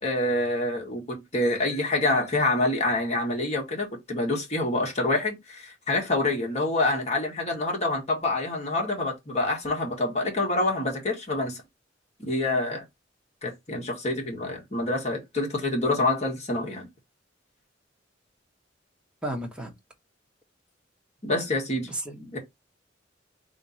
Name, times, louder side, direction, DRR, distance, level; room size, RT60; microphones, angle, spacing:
voice 1, 0.0-11.6 12.2-12.8 13.4-16.9 21.2-21.9 22.3-22.4, left 2 dB, 35° left, 1.5 m, -27 dB
voice 2, 19.2-19.7 21.8-22.3, right 1 dB, 5° right, 1.0 m, -33 dB
3.6 x 2.8 x 4.0 m
head